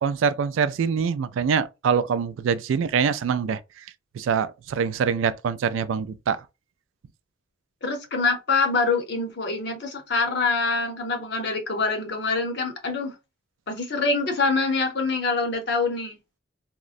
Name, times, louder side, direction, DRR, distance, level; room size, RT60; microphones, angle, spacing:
voice 1, 0.0-3.6 4.1-6.4, right 6 dB, 80° right, 0.3 m, -24 dB
voice 2, 7.8-13.1 13.7-16.2, left 4 dB, 55° left, 0.7 m, -25 dB
3.6 x 2.0 x 2.4 m
head